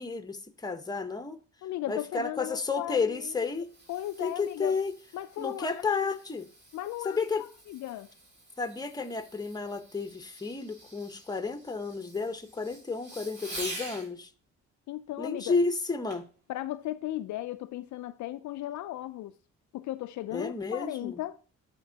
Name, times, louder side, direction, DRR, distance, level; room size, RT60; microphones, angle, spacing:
voice 1, 0.0-1.4 1.9-3.7 4.2-4.9 5.4-6.5 7.0-7.4 8.6-14.3 15.2-16.3 20.3-21.2, left 4 dB, 15° left, 0.9 m, -32 dB
voice 2, 1.6-3.3 3.9-4.8 5.1-6.1 6.7-7.2 7.7-8.1 14.9-15.6 16.5-19.4 19.7-21.4, left 14 dB, 70° left, 0.5 m, -36 dB
Fireworks, 3.1-14.1 16.1-16.4 17.0-17.1, right 1 dB, 40° right, 4.4 m, -47 dB
12.0 x 4.4 x 2.8 m
cardioid pair, 90°, 30 cm